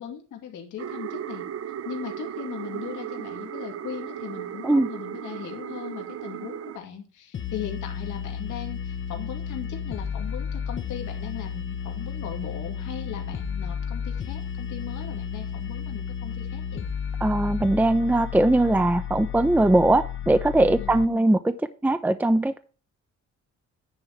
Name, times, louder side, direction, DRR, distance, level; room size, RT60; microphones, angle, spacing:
voice 1, 0.0-1.5 1.8-16.9 20.8-21.3, left 9 dB, 80° left, 3 dB, 2.3 m, -38 dB
sound 1, 0.8-6.8, right 10 dB, 50° right, 0.7 m, -36 dB
sound 2, 7.3-21.1, left 7 dB, 40° left, 0.8 m, -33 dB
voice 2, 17.2-21.4 21.8-22.6, right 1 dB, 5° right, 11 dB, 0.6 m, -20 dB
10.0 x 3.5 x 7.0 m, 0.36 s
cardioid pair, 90°, 30 cm